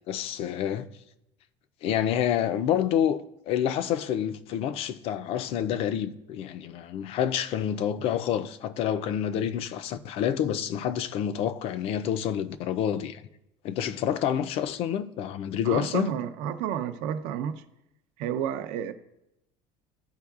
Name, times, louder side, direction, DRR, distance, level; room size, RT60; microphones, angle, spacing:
voice 1, 0.1-0.9 1.8-13.2 13.6-16.1, left 9 dB, 45° left, 0.4 m, -28 dB
voice 2, 15.6-17.6 18.2-18.9, right 9 dB, 70° right, 0.6 m, -31 dB
13.5 x 4.5 x 2.4 m
cardioid pair, 160°, 14 cm